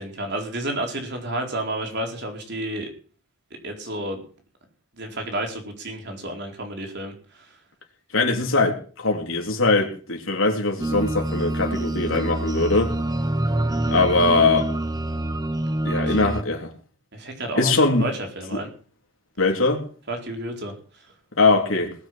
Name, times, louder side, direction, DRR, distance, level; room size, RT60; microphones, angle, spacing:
voice 1, 0.0-2.9 3.6-4.2 5.0-7.6 16.0-16.3 17.1-17.7 18.0-18.7 20.1-20.7, right 1 dB, 50° right, 3 dB, 4.5 m, -31 dB
voice 2, 8.1-12.9 13.9-14.7 15.8-16.7 17.6-18.0 18.5-18.6 19.4-19.8 21.4-21.9, left 3 dB, 65° left, 2 dB, 3.7 m, -21 dB
sound 1, 10.8-16.4, right 1 dB, 20° right, 1.0 m, -26 dB
20.5 x 7.4 x 7.7 m, 0.41 s
head